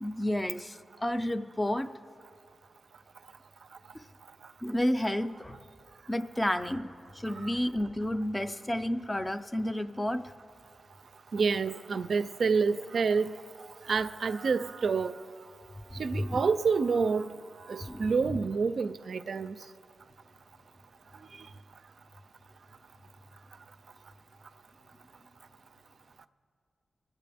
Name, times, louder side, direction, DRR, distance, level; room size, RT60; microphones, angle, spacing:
voice 1, 0.0-1.9 3.9-4.0 4.6-5.6 6.1-10.3 15.9-16.4 17.8-18.4, left 1 dB, 15° left, 0.4 m, -31 dB
voice 2, 11.3-13.3 13.9-15.2 16.0-17.4 17.7-19.5, right 5 dB, 65° right, 0.3 m, -28 dB
23.5 x 8.3 x 3.4 m
wide cardioid pair, 95°, 0 cm